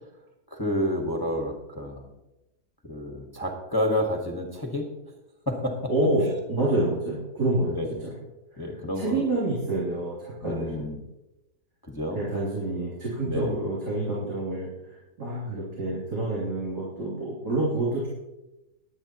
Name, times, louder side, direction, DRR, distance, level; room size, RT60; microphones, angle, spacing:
voice 1, 0.5-2.1 2.8-4.9 5.5-5.8 6.2-6.3 7.6-8.0 8.6-9.2 10.4-11.0 11.8-12.2 13.2-13.5, left 1 dB, 15° left, 1 dB, 1.4 m, -29 dB
voice 2, 5.9-7.7 8.0-8.1 8.5-8.6 9.0-10.9 12.1-18.1, right 2 dB, 75° right, -7 dB, 3.8 m, -28 dB
22.0 x 8.8 x 3.0 m, 0.96 s
omnidirectional pair, 1.7 m